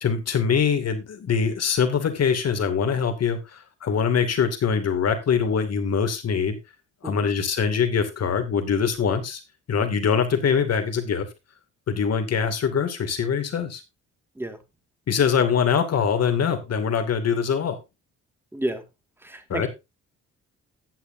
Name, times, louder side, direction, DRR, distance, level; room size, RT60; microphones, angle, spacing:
voice 1, 0.0-6.6 7.0-9.4 9.7-11.3 11.9-13.8 15.1-17.8 19.5-19.7, left 6 dB, 55° left, 8 dB, 2.5 m, -23 dB
voice 2, 18.5-18.8 19.2-19.7, right 1 dB, 5° right, 7 dB, 2.1 m, -30 dB
14.5 x 8.3 x 2.7 m, 0.23 s
cardioid pair, 90°, 30 cm